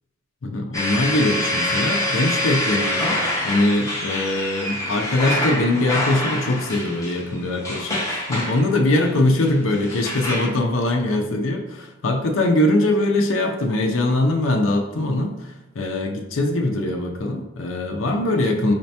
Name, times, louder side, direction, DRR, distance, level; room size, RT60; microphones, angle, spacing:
voice 1, 0.4-18.7, left 1 dB, 80° left, 3 dB, 0.6 m, -22 dB
sound 1, 0.7-10.5, left 1 dB, 15° left, 0.8 m, -26 dB
5.1 x 2.8 x 3.3 m, 1.0 s
head